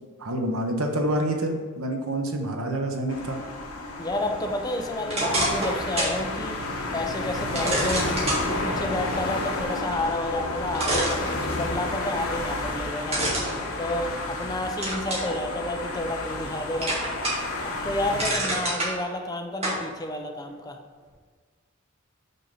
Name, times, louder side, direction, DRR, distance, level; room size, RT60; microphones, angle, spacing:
voice 1, 0.2-3.4, right 1 dB, 80° right, 3 dB, 1.0 m, -27 dB
sound 1, 3.1-18.3, left 2 dB, 90° left, 1.1 m, -31 dB
voice 2, 4.0-6.6 6.9-8.1 8.4-13.2 13.8-16.9 17.6-20.8, left 1 dB, 15° left, 4 dB, 0.5 m, -30 dB
sound 2, 5.1-6.2 6.6-6.7 7.6-8.4 10.2-10.3 10.8-11.8 13.1-14.4 14.8-15.3 15.8-16.5 16.8-17.5 17.9-18.9 19.6-19.8, right 1 dB, 30° right, 1.9 m, -27 dB
5.6 x 5.3 x 5.5 m, 1.5 s
head